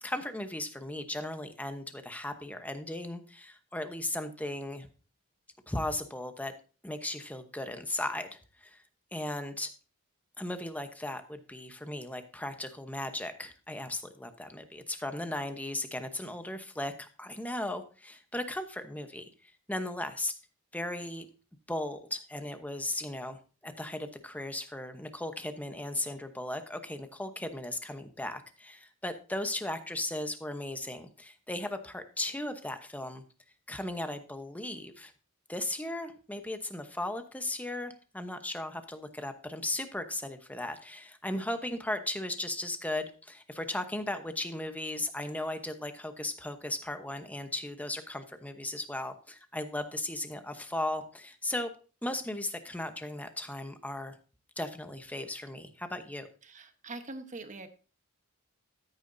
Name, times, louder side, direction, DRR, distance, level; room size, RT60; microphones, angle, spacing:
voice 1, 0.0-4.9 5.7-6.5 6.8-8.8 9.1-9.7 10.4-20.3 20.7-21.3 21.7-23.4 23.6-33.2 33.7-35.1 35.5-51.7 52.0-54.2 54.6-56.3, left 1 dB, 5° left, 8 dB, 0.9 m, -36 dB
voice 2, 56.4-57.7, right 2 dB, 35° right, 7 dB, 1.1 m, -43 dB
13.5 x 8.6 x 2.7 m, 0.36 s
head